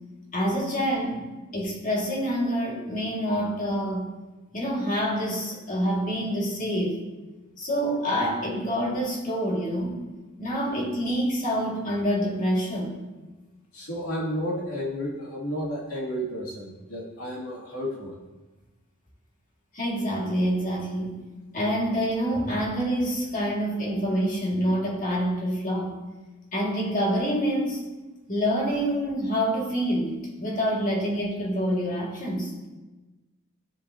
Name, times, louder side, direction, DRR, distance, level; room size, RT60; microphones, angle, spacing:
voice 1, 0.3-4.1 4.5-7.0 7.6-10.0 10.4-13.0 19.7-21.2 21.5-26.0 26.5-27.8 28.3-32.5, equal, 40° left, -3 dB, 2.1 m, -27 dB
voice 2, 13.7-18.2, equal, 85° left, -6 dB, 2.6 m, -32 dB
13.5 x 4.8 x 2.8 m, 1.2 s
head